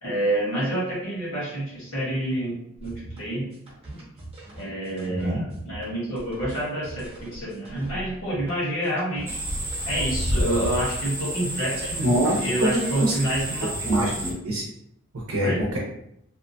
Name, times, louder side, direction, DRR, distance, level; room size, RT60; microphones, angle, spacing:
voice 1, 0.0-3.5 4.6-9.4 9.8-14.0 15.4-15.7, right 1 dB, 65° left, -7 dB, 1.3 m, -28 dB
sound 1, 2.8-10.6, right 1 dB, 30° right, 0.9 m, -42 dB
sound 2, 9.3-14.3, right 1 dB, 10° right, 0.5 m, -30 dB
voice 2, 12.0-12.7 13.0-13.1 13.8-14.6 15.3-15.8, right 1 dB, 85° right, -3 dB, 0.7 m, -24 dB
2.8 x 2.2 x 2.6 m, 0.77 s
head